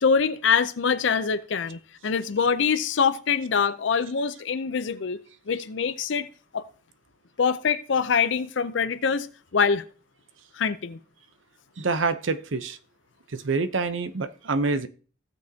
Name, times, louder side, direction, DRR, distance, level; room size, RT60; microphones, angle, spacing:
voice 1, 0.0-6.3 6.5-6.7 7.4-9.8 10.5-11.0, left 6 dB, 75° left, 0.5 m, -24 dB
voice 2, 11.8-12.8 13.3-14.9, right 4 dB, 85° right, 0.7 m, -26 dB
16.5 x 6.3 x 2.8 m
head